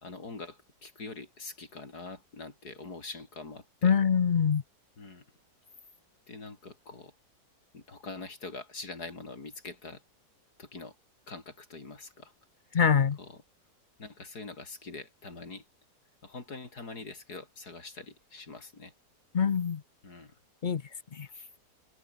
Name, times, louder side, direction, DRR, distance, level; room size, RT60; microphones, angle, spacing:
voice 1, 0.0-3.9 5.0-5.2 6.3-7.1 7.7-10.0 10.6-11.0 11.3-12.3 13.2-13.4 14.0-15.6 16.2-18.9 20.0-20.3 21.3-21.5, left 3 dB, 65° left, 4.7 m, -44 dB
voice 2, 3.8-4.6 12.7-13.2 19.3-19.8 20.6-20.8 21.1-21.3, left 7 dB, 50° left, 0.6 m, -24 dB
omnidirectional pair, 1.8 m